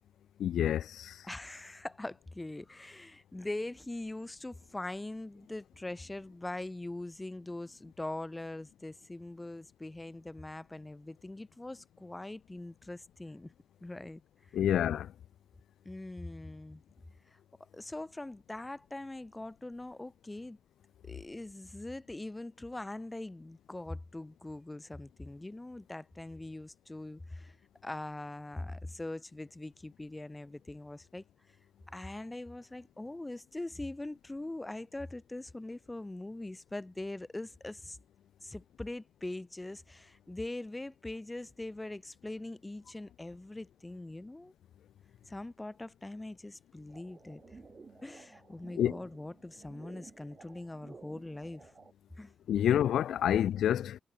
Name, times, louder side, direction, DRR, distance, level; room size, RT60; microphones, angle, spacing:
voice 1, 0.4-1.1 14.5-15.1 48.8-48.9 52.5-54.0, left 10 dB, 80° left, 0.9 m, -28 dB
voice 2, 1.2-13.5 13.8-14.2 15.8-16.8 17.7-20.6 21.0-27.5 27.8-31.2 31.9-38.0 38.4-44.5 45.3-47.4 48.0-51.7 52.2-52.3, left 2 dB, 10° left, 2.6 m, -42 dB
sound 1, 46.9-51.9, right 4 dB, 30° right, 6.4 m, -54 dB
wide cardioid pair, 170°, 0 cm